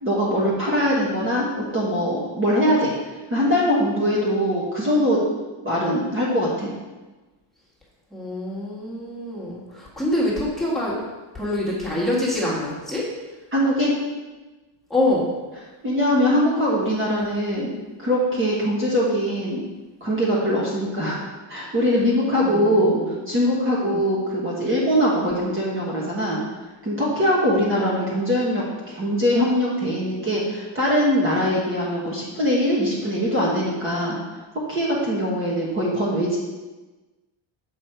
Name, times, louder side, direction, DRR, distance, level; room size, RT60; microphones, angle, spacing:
voice 1, 0.0-2.9 3.3-5.2 5.6-6.7 13.5-13.9 15.8-17.7 18.0-19.6 20.0-21.2 21.5-23.0 23.3-26.4 26.8-34.2 34.7-36.4, equal, 25° right, -6 dB, 1.5 m, -22 dB
voice 2, 8.1-11.0 11.3-13.1 14.9-15.3 22.3-23.2 23.8-24.0, left 1 dB, ahead, -6 dB, 1.8 m, -25 dB
7.1 x 5.5 x 4.5 m, 1.2 s
cardioid pair, 150°, 50 cm